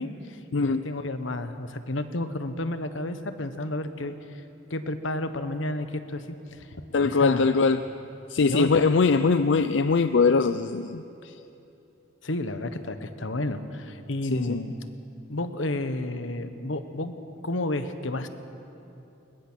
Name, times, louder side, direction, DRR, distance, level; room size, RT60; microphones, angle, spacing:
voice 1, 0.0-4.4 4.7-6.2 6.5-7.4 8.5-8.8 12.2-14.7 15.3-17.1 17.4-18.3, left 1 dB, 90° left, 10 dB, 1.2 m, -31 dB
voice 2, 0.5-0.8 6.9-7.8 8.3-11.0 14.3-14.6, left 4 dB, 70° left, 11 dB, 0.5 m, -21 dB
22.5 x 21.0 x 6.3 m, 2.8 s
head